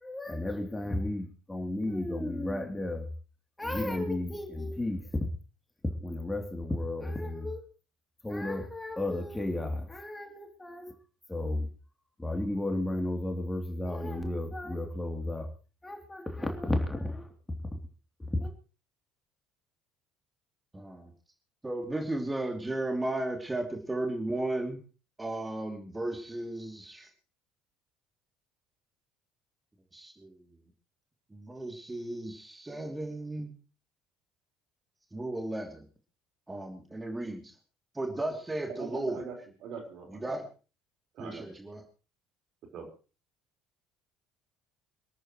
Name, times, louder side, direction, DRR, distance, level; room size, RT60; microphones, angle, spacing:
voice 1, 0.0-3.0 3.6-5.0 6.0-7.6 8.2-10.9 11.3-11.7 12.2-15.5 15.8-17.3 18.3-18.5, left 1 dB, 10° left, 3.2 m, -33 dB
voice 2, 20.7-21.1 21.6-24.8 25.2-27.1 29.9-30.5 31.3-33.5 35.1-35.9 36.5-37.5 37.9-39.2 40.1-40.5 41.2-41.8, right 2 dB, 15° right, 2.9 m, -35 dB
voice 3, 38.8-39.4 39.6-40.3 41.1-41.5 42.7-42.9, right 5 dB, 50° right, 4.6 m, -41 dB
27.0 x 13.5 x 3.2 m
figure-of-eight pair, 60°, 0 cm